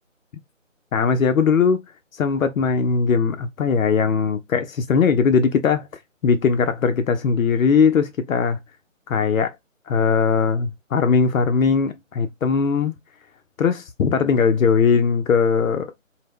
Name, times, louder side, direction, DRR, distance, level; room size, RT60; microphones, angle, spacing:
voice 1, 0.9-1.8 2.1-5.9 6.2-8.6 9.1-9.5 9.9-13.0 13.6-15.9, left 5 dB, 90° left, 0.5 m, -19 dB
2.1 x 2.0 x 3.4 m
figure-of-eight pair, 180°, 39 cm